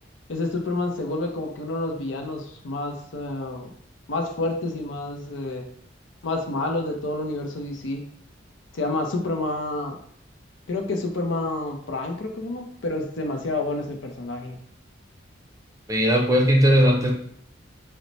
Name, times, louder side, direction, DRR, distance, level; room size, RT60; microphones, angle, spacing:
voice 1, 0.3-3.7 4.1-5.7 6.2-8.0 8.7-10.0 10.7-14.6, left 2 dB, 80° left, 3 dB, 0.6 m, -29 dB
voice 2, 15.9-17.1, equal, 20° right, 0 dB, 0.5 m, -18 dB
3.1 x 2.1 x 4.0 m, 0.64 s
head